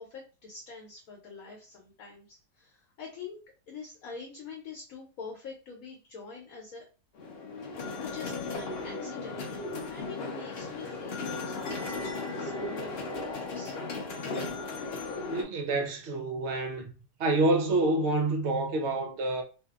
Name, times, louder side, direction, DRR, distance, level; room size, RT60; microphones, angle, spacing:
voice 1, 0.0-3.4 3.7-6.8 8.0-13.8, left 5 dB, 65° left, 1.1 m, -45 dB
sound 1, 7.2-15.4, left 3 dB, 85° left, 0.5 m, -36 dB
voice 2, 15.3-16.9 17.2-19.4, right 2 dB, 65° right, 0.7 m, -27 dB
2.7 x 2.5 x 2.3 m
omnidirectional pair, 1.8 m